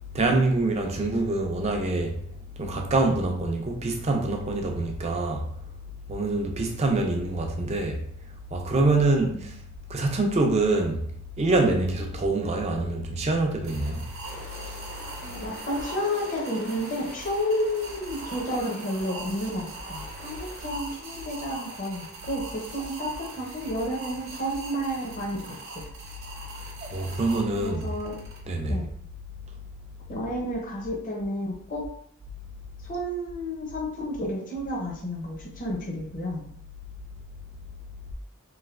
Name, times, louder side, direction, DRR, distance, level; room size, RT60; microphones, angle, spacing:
voice 1, 0.1-2.2 2.6-5.5 6.1-8.0 8.5-9.5 9.9-11.0 11.4-14.0 26.8-27.8 28.5-28.8, right 2 dB, 30° right, 0.4 m, -25 dB
sound 1, 13.6-28.4, right 3 dB, 65° right, 0.8 m, -42 dB
sound 2, 14.2-20.6, left 1 dB, 80° left, 1.3 m, -44 dB
voice 2, 15.2-25.5 27.6-28.2 28.7-28.9 30.1-31.9 32.8-36.4, equal, 35° left, 0.6 m, -31 dB
3.1 x 2.6 x 2.5 m
head